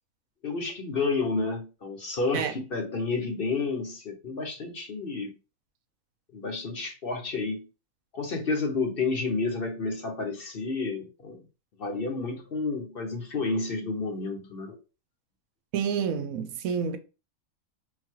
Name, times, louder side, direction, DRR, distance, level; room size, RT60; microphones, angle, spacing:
voice 1, 0.4-5.3 6.3-7.7 8.1-11.4 11.8-14.8, left 3 dB, 45° left, 1.0 m, -30 dB
voice 2, 15.7-17.0, right 7 dB, 80° right, 1.0 m, -28 dB
4.0 x 2.3 x 4.5 m
omnidirectional pair, 1.4 m